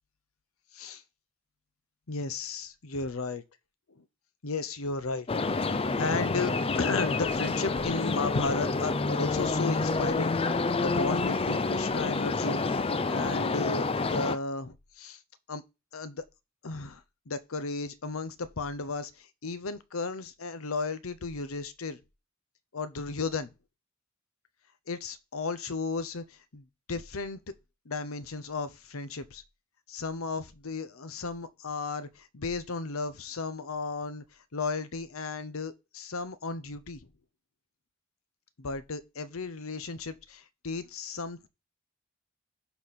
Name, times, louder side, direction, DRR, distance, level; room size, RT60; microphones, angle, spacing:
voice 1, 2.1-3.4 4.0-4.1 4.4-5.3 6.0-10.3 10.8-12.7 13.1-15.2 15.5-15.6 15.9-16.2 16.6-22.0 22.7-23.5 24.9-27.4 27.8-29.4 29.9-34.2 34.5-37.0 38.6-41.5, left 3 dB, 85° left, 0.9 m, -34 dB
sound 1, 5.3-14.4, left 3 dB, 25° left, 0.5 m, -28 dB
11.0 x 4.2 x 4.3 m
head